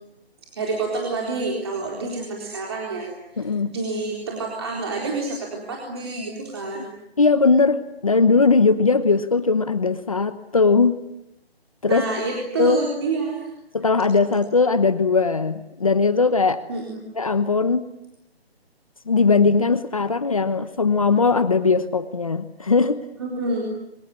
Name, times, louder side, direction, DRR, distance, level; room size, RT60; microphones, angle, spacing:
voice 1, 0.6-3.1 3.3-6.9 11.9-13.5 16.7-17.0 23.2-23.7, right 3 dB, 25° right, -1 dB, 4.0 m, -28 dB
voice 2, 3.4-3.7 6.7-6.8 7.2-11.0 11.8-12.0 12.6-12.8 13.7-16.6 17.2-17.9 19.1-23.0, left 4 dB, 35° left, 13 dB, 1.1 m, -19 dB
25.0 x 24.0 x 9.8 m, 0.82 s
hypercardioid pair, 175°, 31 cm